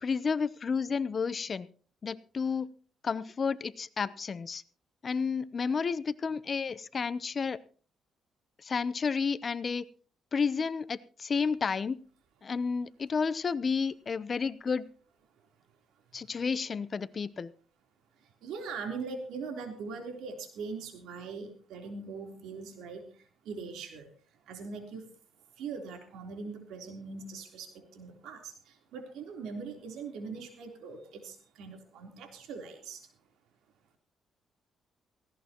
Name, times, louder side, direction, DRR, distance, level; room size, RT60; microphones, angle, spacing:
voice 1, 0.0-1.7 2.0-2.7 3.0-4.6 5.0-7.6 8.6-9.8 10.3-12.0 12.4-14.9 16.1-17.5, left 5 dB, 40° left, 16 dB, 0.8 m, -31 dB
voice 2, 18.4-23.0 23.5-24.1 24.5-25.1 25.6-28.5 28.9-33.0, right 4 dB, 85° right, 4 dB, 3.6 m, -41 dB
18.0 x 16.5 x 3.0 m, 0.40 s
cardioid pair, 90°, 0 cm